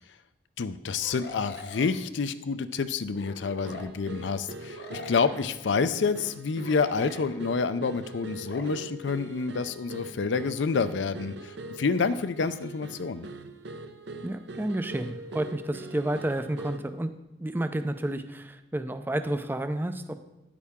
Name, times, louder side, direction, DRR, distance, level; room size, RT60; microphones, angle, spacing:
voice 1, 0.6-13.3, left 5 dB, 80° left, 12 dB, 0.5 m, -28 dB
sound 1, 1.0-2.0 3.1-3.9 4.8-5.6 6.6-7.4 8.4-8.6, left 2 dB, 60° left, 0.9 m, -43 dB
sound 2, 3.6-17.0, right 2 dB, 70° right, 0.6 m, -42 dB
voice 2, 14.2-17.1 17.4-20.2, right 1 dB, 10° right, 9 dB, 0.4 m, -30 dB
10.0 x 8.4 x 3.6 m, 1.0 s
head